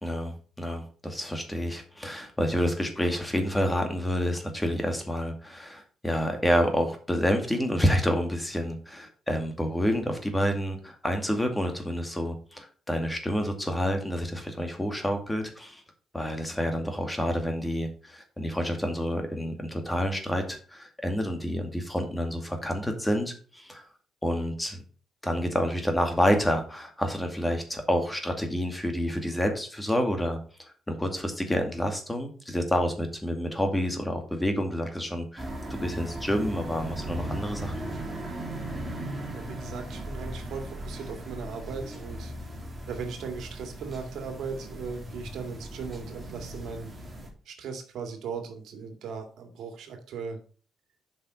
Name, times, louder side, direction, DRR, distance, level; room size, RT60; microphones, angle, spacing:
voice 1, 0.0-15.8 16.1-23.9 24.2-24.8 25.2-37.9, equal, 10° left, 5 dB, 2.2 m, -28 dB
sound 1, 35.4-47.3, right 1 dB, 25° right, 2.7 m, -38 dB
voice 2, 39.3-42.3 42.9-46.9 47.5-50.4, right 5 dB, 75° right, 5 dB, 2.1 m, -38 dB
7.4 x 5.8 x 5.4 m, 0.39 s
cardioid pair, 90°, 0 cm